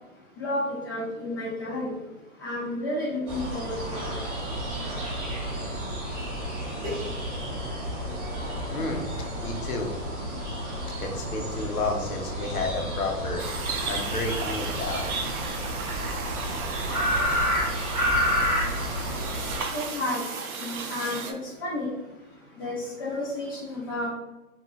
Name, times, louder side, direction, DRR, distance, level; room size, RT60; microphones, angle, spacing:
voice 1, 0.4-1.9 2.4-4.0 6.8-6.9 19.7-20.2 20.6-21.9 22.6-24.1, left 1 dB, 15° left, -6 dB, 0.4 m, -31 dB
sound 1, 3.3-19.6, equal, 15° right, 0.7 m, -30 dB
voice 2, 8.7-9.0 9.4-9.9 11.0-13.4 13.9-15.1, left 3 dB, 75° left, 2 dB, 0.8 m, -31 dB
sound 2, 13.4-21.3, right 5 dB, 70° right, 0.6 m, -35 dB
2.6 x 2.1 x 3.0 m, 1.1 s
figure-of-eight pair, 130°, 44 cm